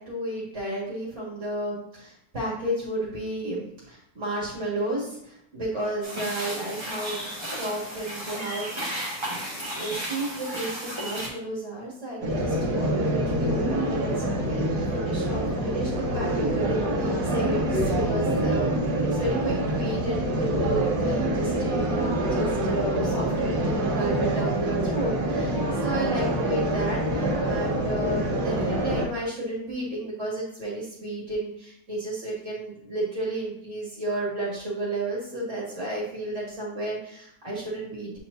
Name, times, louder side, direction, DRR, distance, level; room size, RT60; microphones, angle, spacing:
voice 1, 0.0-8.7 9.2-38.2, right 1 dB, 45° right, -6 dB, 2.1 m, -32 dB
sound 1, 6.0-11.3, right 1 dB, 15° right, 1.4 m, -34 dB
sound 2, 12.2-29.1, right 1 dB, 70° right, 1.5 m, -26 dB
8.0 x 4.4 x 2.6 m, 0.75 s
omnidirectional pair, 1.8 m